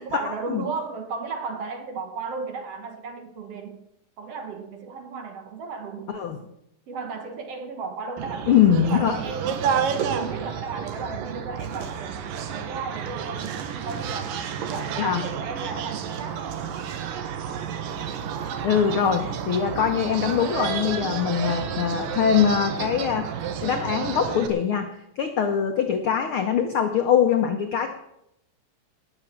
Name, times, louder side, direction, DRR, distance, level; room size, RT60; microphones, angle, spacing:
voice 1, 0.0-3.9 4.2-6.2 6.9-16.7, right 4 dB, 60° right, 6 dB, 1.8 m, -35 dB
sound 1, 8.2-24.5, right 8 dB, 80° right, 2.9 m, -31 dB
voice 2, 8.5-9.2 15.0-15.2 18.6-23.3 23.6-24.9 25.2-27.9, left 8 dB, 90° left, 6 dB, 1.1 m, -22 dB
19.0 x 7.0 x 7.3 m, 0.81 s
omnidirectional pair, 3.9 m